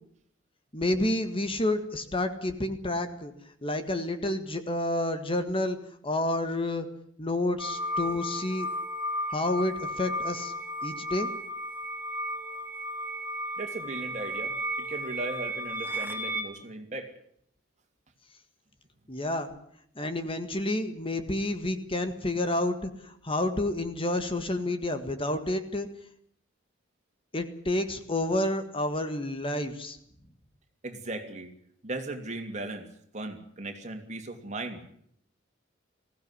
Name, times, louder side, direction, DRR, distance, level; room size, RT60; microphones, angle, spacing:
voice 1, 0.7-3.3 3.6-5.8 6.0-6.9 7.2-8.7 9.3-10.5 10.8-11.3 19.1-19.5 19.9-25.9 27.3-30.0, left 1 dB, 30° left, 8 dB, 1.7 m, -29 dB
sound 1, 7.6-16.4, equal, 10° right, 3.6 m, -34 dB
voice 2, 13.6-14.5 14.8-17.1 30.8-31.5 31.8-32.9 33.1-34.8, right 2 dB, 40° right, 5 dB, 3.1 m, -37 dB
21.0 x 16.5 x 9.9 m, 0.67 s
head